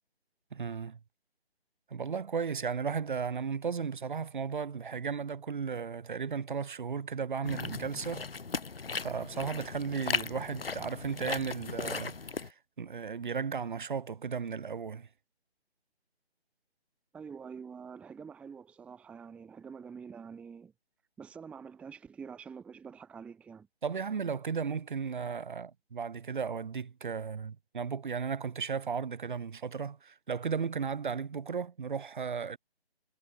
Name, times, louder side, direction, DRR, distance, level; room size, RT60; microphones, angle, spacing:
voice 1, 0.5-1.0 1.9-8.3 9.0-15.1 23.8-32.6, right 6 dB, 50° right, 3.1 m, -35 dB
sound 1, 7.4-12.5, left 4 dB, 60° left, 4.2 m, -37 dB
voice 2, 17.1-20.7 21.2-23.7, right 6 dB, 5° right, 1.5 m, -46 dB
figure-of-eight pair, 155°, 32 cm